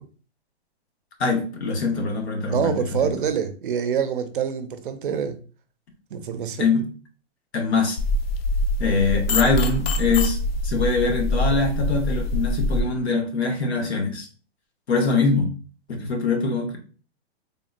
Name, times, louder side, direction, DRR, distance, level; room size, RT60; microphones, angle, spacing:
voice 1, 1.2-2.7 6.6-6.9 7.5-8.0 8.8-10.4 10.6-14.3 14.9-15.5 15.9-16.8, left 4 dB, 85° left, 1.0 m, -23 dB
voice 2, 2.5-5.4 6.1-6.7, right 7 dB, 55° right, 0.4 m, -26 dB
sound 1, 8.0-12.8, left 1 dB, 65° left, 0.5 m, -24 dB
3.5 x 2.1 x 2.5 m
hypercardioid pair, 175°, 32 cm